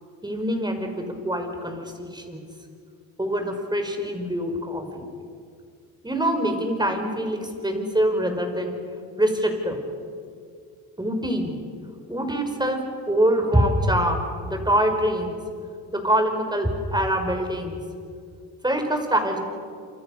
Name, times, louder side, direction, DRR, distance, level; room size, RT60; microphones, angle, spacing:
voice 1, 0.2-2.4 3.2-5.0 6.0-8.8 9.2-9.8 11.0-11.5 12.1-15.3 15.9-17.8 18.6-19.4, right 1 dB, 10° right, 5 dB, 5.4 m, -24 dB
28.5 x 25.5 x 6.6 m, 2.3 s
cardioid pair, 80°, 39 cm